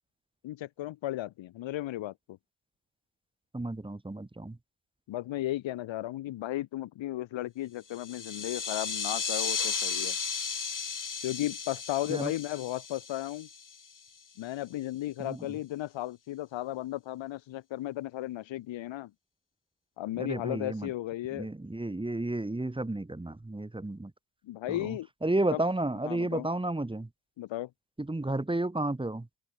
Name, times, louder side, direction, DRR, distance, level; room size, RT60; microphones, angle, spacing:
voice 1, 0.4-2.4 5.1-10.2 11.2-13.5 14.4-19.1 20.0-21.5 24.4-25.1 25.5-25.6 26.0-26.5 27.4-27.7, left 14 dB, 75° left, 2.1 m, -35 dB
voice 2, 3.5-4.6 12.1-12.3 15.2-15.4 20.2-20.9 21.3-24.1 24.7-27.1 28.0-29.3, right 2 dB, 10° right, 1.5 m, -32 dB
sound 1, 7.9-14.0, left 6 dB, 40° left, 5.5 m, -35 dB
open air
supercardioid pair, 60°, 46 cm